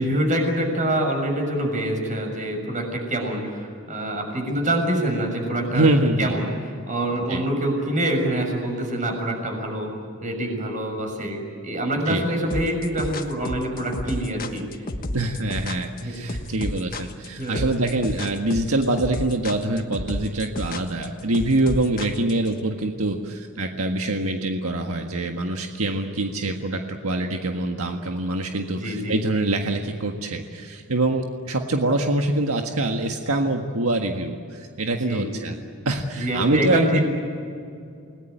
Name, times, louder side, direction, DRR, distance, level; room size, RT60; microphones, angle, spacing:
voice 1, 0.0-9.9 10.2-14.6 16.0-16.4 17.4-17.6 28.7-29.1 35.0-35.3 36.1-37.0, right 1 dB, 35° right, 2 dB, 6.7 m, -25 dB
voice 2, 5.7-6.3 7.3-7.4 12.1-12.2 15.1-35.5 35.8-37.0, right 2 dB, 80° right, 3 dB, 1.7 m, -24 dB
sound 1, 12.5-22.5, left 1 dB, 40° left, 1.4 m, -31 dB
30.0 x 19.5 x 9.3 m, 2.4 s
head